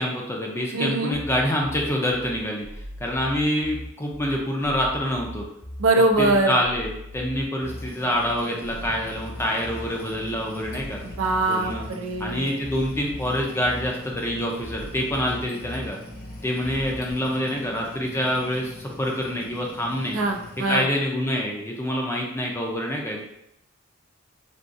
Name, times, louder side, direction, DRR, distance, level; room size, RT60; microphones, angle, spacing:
voice 1, 0.0-2.7 3.0-5.5 6.2-11.0 11.5-11.9 12.2-16.0 16.4-20.2 20.7-23.3, equal, 10° left, -1 dB, 0.4 m, -26 dB
voice 2, 0.7-1.1 5.8-6.6 11.0-12.5 20.1-20.9, right 2 dB, 70° right, 4 dB, 0.4 m, -22 dB
sound 1, 1.1-17.1, equal, 40° right, 1.0 m, -39 dB
sound 2, 7.6-20.7, left 2 dB, 45° left, 0.7 m, -43 dB
3.6 x 2.3 x 2.5 m, 0.83 s
head